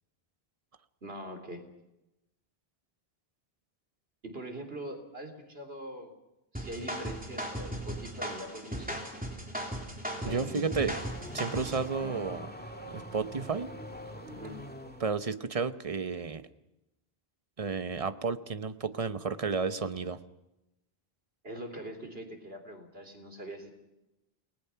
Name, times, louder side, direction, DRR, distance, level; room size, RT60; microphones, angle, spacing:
voice 1, 1.0-1.6 4.2-6.1 6.5-9.0 10.1-10.6 14.3-14.6 21.4-23.7, right 1 dB, 70° right, 5 dB, 3.8 m, -42 dB
sound 1, 6.5-11.9, equal, 10° right, 3.4 m, -37 dB
Car / Accelerating revving vroom, 10.2-15.2, equal, 10° left, 1.9 m, -44 dB
voice 2, 10.2-11.0 11.3-12.5 12.9-13.7 15.0-16.5 17.6-20.2, right 5 dB, 35° right, 11 dB, 1.0 m, -32 dB
29.5 x 19.5 x 5.8 m, 0.92 s
omnidirectional pair, 1.0 m